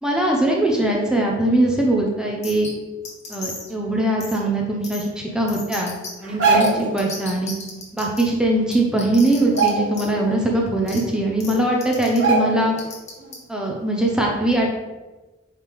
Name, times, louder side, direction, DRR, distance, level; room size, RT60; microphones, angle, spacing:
voice 1, 0.0-2.7 3.3-7.5 7.9-12.8 13.5-14.7, right 1 dB, 5° right, -1 dB, 0.7 m, -21 dB
sound 1, 2.4-2.7 3.0-3.7 4.2-4.4 4.8-5.0 5.5-6.1 6.6-6.7 7.0-8.2 8.7-9.7 9.9-10.1 10.9-11.0 11.4-11.5 11.8-12.2 12.8-13.3, left 3 dB, 35° left, 1.3 m, -34 dB
sound 2, 6.2-7.0 8.4-8.5 8.8-9.1 9.4-10.3 10.7-10.8 11.5-11.6 12.2-12.8 13.2-13.3, right 4 dB, 65° right, 1.5 m, -21 dB
8.6 x 3.3 x 3.5 m, 1.1 s
head